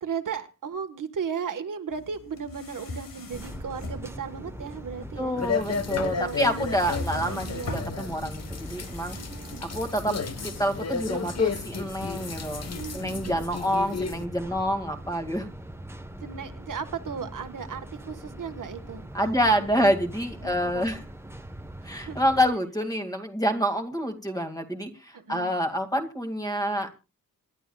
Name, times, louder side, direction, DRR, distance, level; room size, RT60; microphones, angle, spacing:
voice 1, 0.0-5.4 6.0-7.7 9.1-9.7 12.7-13.3 13.6-14.1 16.2-19.8 20.4-20.9 21.8-22.2 25.1-25.5, right 6 dB, 65° right, 6 dB, 1.5 m, -36 dB
sound 1, 1.9-13.0, left 2 dB, 85° left, 5.5 m, -42 dB
sound 2, 3.3-22.5, right 1 dB, 5° right, 1.2 m, -42 dB
voice 2, 5.2-7.5 7.7-9.2 9.6-10.2 10.4-15.5 19.1-21.0 21.8-27.0, equal, 10° left, 6 dB, 2.2 m, -27 dB
sound 3, 5.4-14.2, left 5 dB, 50° left, 1.2 m, -33 dB
26.5 x 11.5 x 2.4 m, 0.31 s
wide cardioid pair, 145°, 33 cm